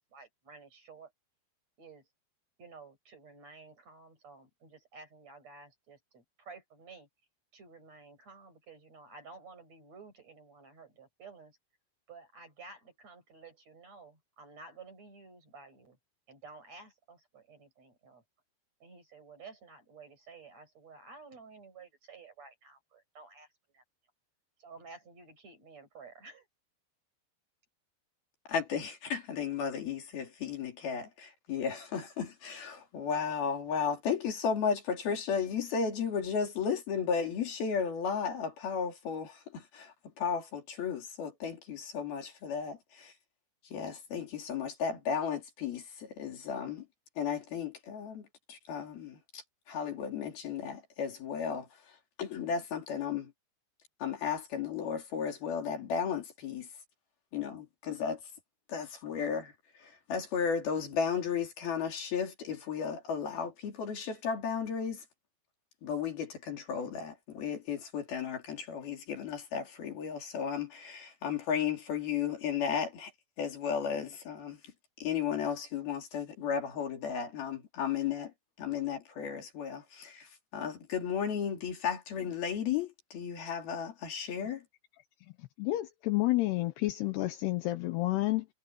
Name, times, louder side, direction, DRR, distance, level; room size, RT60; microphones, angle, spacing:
voice 1, 0.1-1.1 1.8-2.1 2.6-7.1 7.5-11.6 12.1-16.0 16.3-18.2 18.8-23.5 23.7-23.8 24.6-26.5, right 4 dB, 35° right, 7.5 m, -52 dB
voice 2, 28.5-43.1 43.6-46.9 47.2-53.3 54.0-56.7 57.3-58.2 58.7-65.0 65.8-73.1 73.4-74.7 75.0-84.6, left 7 dB, 60° left, 4.9 m, -34 dB
voice 3, 85.4-88.5, left 18 dB, 75° left, 2.8 m, -30 dB
omnidirectional pair, 5.1 m